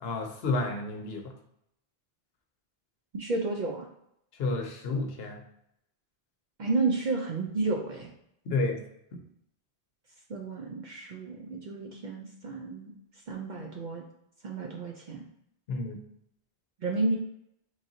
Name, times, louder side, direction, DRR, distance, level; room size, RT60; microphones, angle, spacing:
voice 1, 0.0-1.3 4.4-5.4 8.5-8.8 9.1-9.2 15.7-16.0, left 2 dB, 65° left, 3 dB, 0.9 m, -31 dB
voice 2, 3.2-3.9 6.6-8.1 10.3-12.9 13.3-14.0 14.4-15.2 16.8-17.2, right 3 dB, 55° right, 1 dB, 0.5 m, -31 dB
3.9 x 3.2 x 2.7 m, 0.77 s
omnidirectional pair, 1.1 m